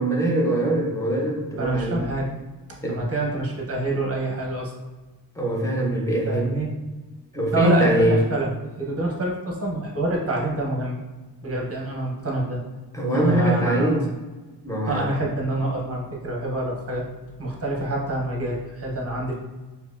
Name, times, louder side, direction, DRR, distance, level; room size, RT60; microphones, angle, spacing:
voice 1, 0.0-2.0 2.8-3.0 5.4-6.5 7.3-8.2 12.9-14.1 14.6-15.1, right 1 dB, 10° left, -2 dB, 0.5 m, -22 dB
voice 2, 1.6-2.3 2.9-4.7 6.2-6.7 7.5-8.5 8.8-11.0 11.4-12.6 13.1-14.0 14.9-17.0 17.4-19.3, right 2 dB, 35° right, -2 dB, 0.7 m, -26 dB
4.1 x 2.6 x 2.4 m, 1.2 s
wide cardioid pair, 170°, 41 cm